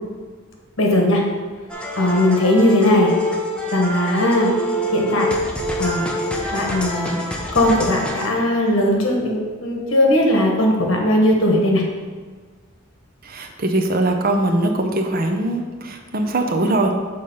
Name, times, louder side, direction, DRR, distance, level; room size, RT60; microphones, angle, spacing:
voice 1, 0.8-1.2 1.9-3.1 3.7-4.5 4.9-5.3 5.8-6.0 6.5-7.2 7.5-11.8, left 1 dB, 75° left, 0 dB, 1.3 m, -18 dB
sound 1, 1.7-8.3, equal, 5° left, 0.7 m, -26 dB
voice 2, 13.2-16.9, right 2 dB, 45° right, 4 dB, 0.7 m, -21 dB
6.6 x 4.0 x 5.5 m, 1.5 s
head